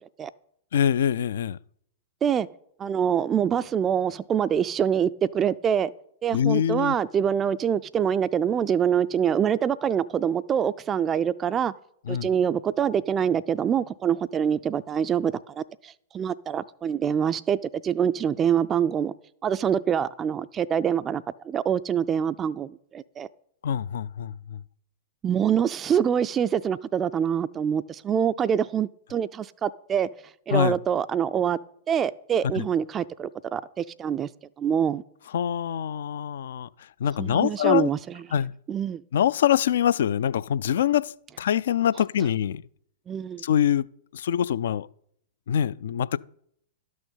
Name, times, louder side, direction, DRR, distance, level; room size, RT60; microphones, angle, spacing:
voice 1, 0.7-1.6 6.3-6.9 12.1-12.3 23.6-24.6 30.5-30.8 32.5-32.6 35.3-36.7 37.0-37.9 38.3-38.5 39.1-41.1 41.4-42.6 43.4-43.9 44.1-44.9 45.5-46.2, left 9 dB, 65° left, 0.3 m, -24 dB
voice 2, 2.8-5.9 6.2-11.7 12.1-19.1 19.4-23.3 25.2-30.1 30.5-31.6 31.9-34.3 34.6-35.0 37.2-38.2 38.7-39.0 43.1-43.4, right 8 dB, 25° right, 0.3 m, -25 dB
12.0 x 6.3 x 5.5 m
figure-of-eight pair, 100°, 0 cm